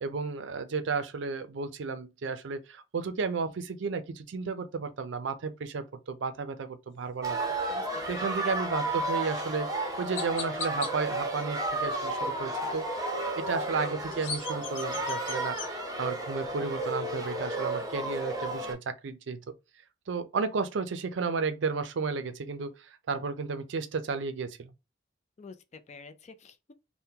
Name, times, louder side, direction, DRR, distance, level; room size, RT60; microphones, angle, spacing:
voice 1, 0.0-7.4 8.1-12.8 13.4-15.6 16.0-19.4 20.1-24.7, right 4 dB, 65° right, 0.4 m, -33 dB
sound 1, 7.2-18.7, right 1 dB, 20° right, 0.7 m, -32 dB
voice 2, 7.7-8.5 25.4-26.7, left 4 dB, 35° left, 0.4 m, -48 dB
Chirp tweet, 9.2-9.4 10.1-10.9 13.9-15.7, left 6 dB, 70° left, 0.8 m, -38 dB
3.6 x 2.1 x 2.8 m
head